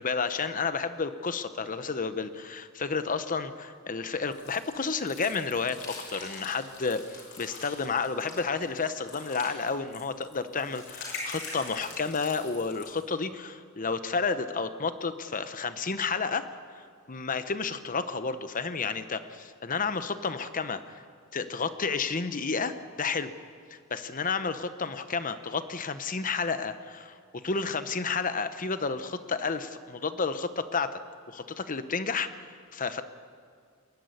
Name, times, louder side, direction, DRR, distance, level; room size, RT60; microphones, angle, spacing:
voice 1, 0.0-16.4 17.1-21.0 21.3-23.3 23.9-31.0 31.3-32.3 32.7-33.0, left 4 dB, 40° left, 11 dB, 0.9 m, -31 dB
sound 1, 4.3-13.0, left 3 dB, 60° left, 6.4 m, -43 dB
21.5 x 12.0 x 9.7 m, 2.1 s
head